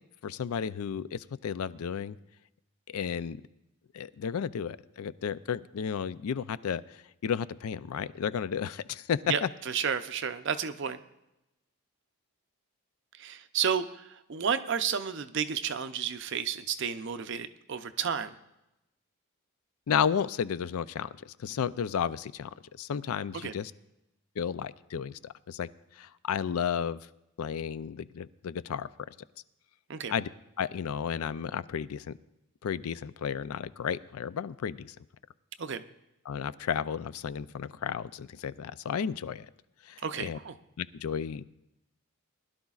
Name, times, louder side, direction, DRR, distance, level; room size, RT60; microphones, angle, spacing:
voice 1, 0.2-2.2 2.9-3.4 3.9-9.5 19.9-22.5 22.8-23.7 24.4-25.7 26.0-27.0 27.4-28.9 30.1-30.3 30.6-32.1 32.6-35.0 36.3-39.5 39.9-40.4 40.8-41.4, left 7 dB, 75° left, 16 dB, 0.4 m, -33 dB
voice 2, 9.7-11.0 13.2-13.8 14.3-18.3 23.4-23.5 29.9-30.1 35.6-35.8 40.0-40.5, right 7 dB, 55° right, 10 dB, 0.5 m, -31 dB
20.5 x 11.5 x 2.4 m, 0.90 s
head